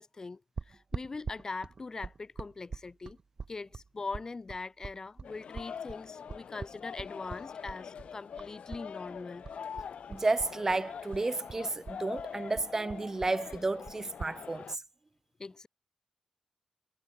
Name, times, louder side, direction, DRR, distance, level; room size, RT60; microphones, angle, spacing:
voice 1, 0.0-3.2 3.5-9.4 15.4-15.7, left 3 dB, 30° left, 3.5 m, -42 dB
sound 1, 0.6-8.9 9.1-10.8 11.1-14.4, right 4 dB, 40° right, 5.5 m, -43 dB
sound 2, 5.2-14.8, left 7 dB, 75° left, 7.2 m, -44 dB
voice 2, 10.1-14.8, right 3 dB, 25° right, 0.7 m, -32 dB
wide cardioid pair, 150°, 2 cm